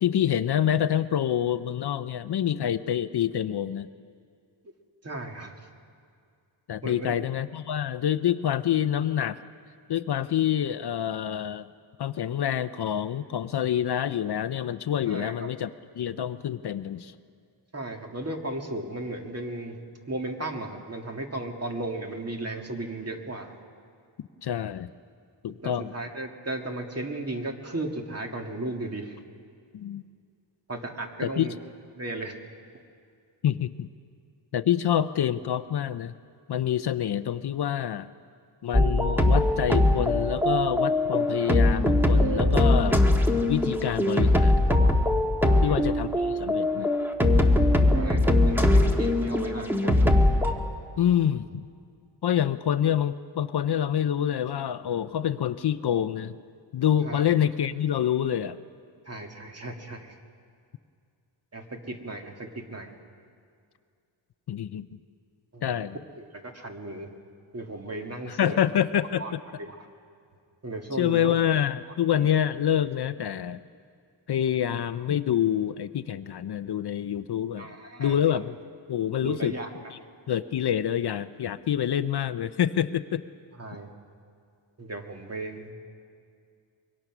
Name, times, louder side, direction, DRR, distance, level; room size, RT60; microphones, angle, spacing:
voice 1, 0.0-3.9 6.7-9.4 9.9-11.7 12.0-15.7 16.0-17.1 24.4-24.9 25.4-25.9 29.7-30.0 31.2-31.5 33.4-33.9 34.5-36.1 36.5-38.1 38.6-43.0 43.4-44.7 45.6-46.9 51.0-51.6 52.2-56.3 56.7-58.6 64.5-64.9 65.6-66.0 68.3-69.4 70.9-73.6 74.3-77.7 78.0-78.6 78.9-79.5 79.9-80.0 80.3-83.3, left 10 dB, 55° left, 12 dB, 0.6 m, -27 dB
voice 2, 5.0-5.5 6.8-7.2 15.1-15.3 17.7-19.8 20.1-23.5 25.5-29.2 30.7-31.6 31.9-32.3 45.4-45.8 47.9-50.3 57.0-57.2 59.1-60.2 61.5-62.9 65.5-65.7 66.2-67.1 67.5-68.6 69.2-69.3 69.6-69.9 70.6-71.3 72.1-72.3 77.6-78.2 79.2-79.7 83.5-83.9 84.8-85.7, right 2 dB, 30° right, 2 dB, 2.2 m, -35 dB
sound 1, 38.7-50.5, left 1 dB, 5° right, 1.6 m, -21 dB
24.0 x 23.0 x 6.1 m, 2.3 s
wide cardioid pair, 120°, 46 cm